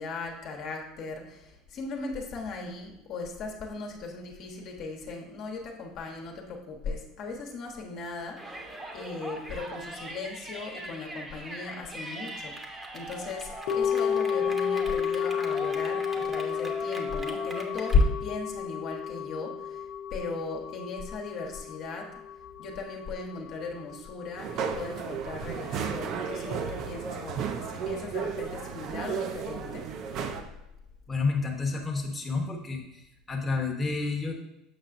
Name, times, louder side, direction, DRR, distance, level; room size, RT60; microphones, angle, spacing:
voice 1, 0.0-19.8 20.1-22.1 22.6-29.9, left 3 dB, 55° left, 1 dB, 1.0 m, -36 dB
Yell, 8.4-18.0, right 1 dB, 20° right, 0.9 m, -41 dB
sound 1, 13.7-24.0 24.2-24.3, left 7 dB, 75° left, 0.7 m, -32 dB
sound 2, 24.4-30.4, right 6 dB, 55° right, 0.6 m, -34 dB
voice 2, 31.1-33.0 33.3-34.3, left 4 dB, 15° left, 0 dB, 1.0 m, -30 dB
6.6 x 5.5 x 2.6 m, 0.87 s
supercardioid pair, 95°, 0 cm